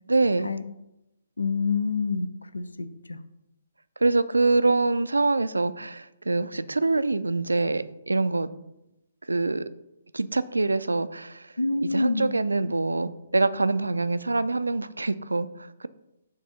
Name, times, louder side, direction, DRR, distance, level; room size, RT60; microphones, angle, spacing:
voice 1, 0.1-0.5 4.0-8.5 9.3-9.7 10.1-11.5 11.8-15.9, right 3 dB, 75° right, 14 dB, 0.3 m, -25 dB
voice 2, 1.4-2.3 2.5-3.2 11.6-12.3, left 4 dB, 75° left, 12 dB, 0.5 m, -27 dB
6.5 x 2.6 x 5.6 m, 0.90 s
figure-of-eight pair, 130°, 0 cm